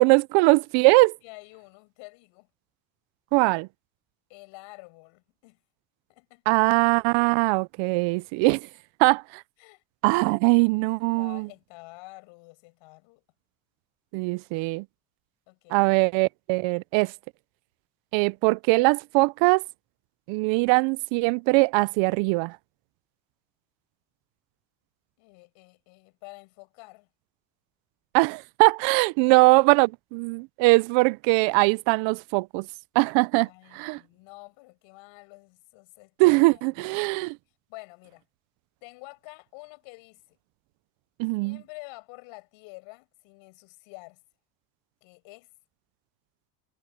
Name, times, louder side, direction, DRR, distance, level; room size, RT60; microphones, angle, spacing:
voice 1, 0.0-1.2 3.3-3.7 6.5-8.7 9.0-9.4 10.0-11.5 14.1-14.8 15.7-17.1 18.1-19.6 20.3-22.6 28.1-32.7 33.0-33.5 33.7-34.0 36.2-37.4 41.2-41.6, right 26 dB, 75° right, 0.6 m, -21 dB
voice 2, 1.2-2.5 4.3-5.6 6.1-6.6 9.6-9.8 10.8-13.2 15.5-15.9 25.2-27.1 29.2-29.4 33.4-36.1 36.5-37.1 37.7-38.2 38.8-40.4 41.4-44.2 45.0-45.5, left 26 dB, 85° left, 6.5 m, -48 dB
cardioid pair, 130°, 45 cm